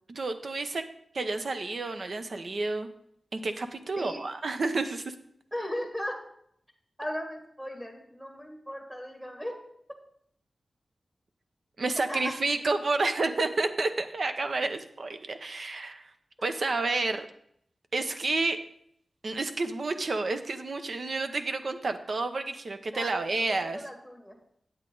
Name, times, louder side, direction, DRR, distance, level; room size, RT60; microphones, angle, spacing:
voice 1, 0.1-0.8 1.1-2.9 3.3-5.1 11.8-16.1 16.4-17.3 17.9-18.6 19.2-23.8, right 3 dB, 60° right, 8 dB, 0.7 m, -30 dB
voice 2, 5.5-6.1 7.0-9.5 12.1-12.3 16.4-16.5 22.9-23.2 23.5-24.4, equal, 15° right, 1 dB, 1.6 m, -37 dB
8.7 x 8.0 x 3.9 m, 0.69 s
wide cardioid pair, 115°, 0 cm